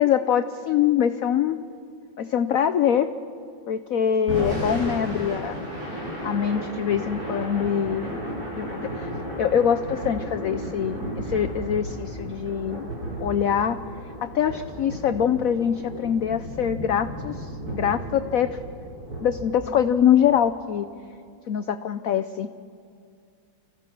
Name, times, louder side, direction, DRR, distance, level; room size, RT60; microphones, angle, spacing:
voice 1, 0.0-1.6 2.2-3.1 3.7-5.7 6.2-9.1 9.4-12.9 13.2-13.8 14.2-18.6 19.2-20.9 21.5-22.5, left 9 dB, 90° left, 9 dB, 0.7 m, -24 dB
Thunder / Rain, 4.1-20.4, right 1 dB, 50° right, 7.2 m, -34 dB
30.0 x 16.0 x 6.1 m, 2.3 s
omnidirectional pair, 2.2 m